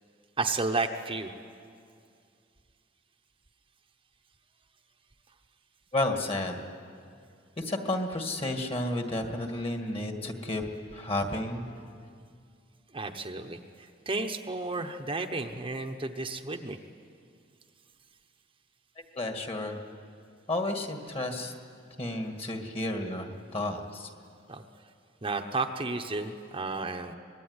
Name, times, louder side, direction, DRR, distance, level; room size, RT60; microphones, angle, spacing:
voice 1, 0.4-1.3 12.9-13.6 14.1-16.8 24.5-24.6 25.2-27.1, right 3 dB, 25° right, 4 dB, 1.0 m, -32 dB
voice 2, 5.9-6.6 7.6-11.6 19.2-19.8 20.5-21.5 22.0-24.1, left 1 dB, 30° left, 4 dB, 2.0 m, -32 dB
24.5 x 20.5 x 9.7 m, 2.3 s
head